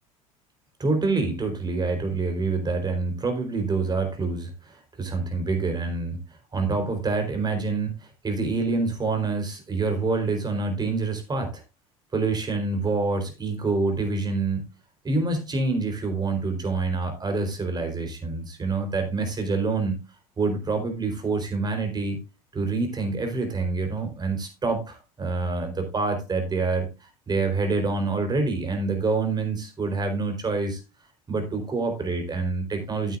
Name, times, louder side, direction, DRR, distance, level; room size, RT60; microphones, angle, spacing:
voice 1, 0.8-6.2 6.5-11.6 12.1-14.7 15.0-20.0 20.4-22.2 22.5-30.8 31.3-33.2, right 3 dB, 25° right, 6 dB, 4.0 m, -26 dB
13.0 x 9.1 x 2.5 m, 0.26 s
figure-of-eight pair, 70°, 18 cm